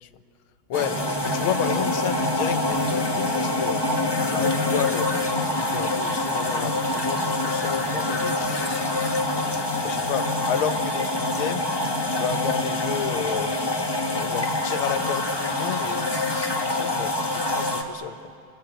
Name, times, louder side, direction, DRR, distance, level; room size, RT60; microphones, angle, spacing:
voice 1, 0.7-3.8 4.3-5.1 5.5-8.9 9.8-11.7 12.1-13.6 14.1-18.2, left 9 dB, 85° left, 10 dB, 1.8 m, -31 dB
sound 1, 0.7-17.8, left 2 dB, 15° left, 1.1 m, -25 dB
29.5 x 20.5 x 8.0 m, 2.5 s
omnidirectional pair, 2.2 m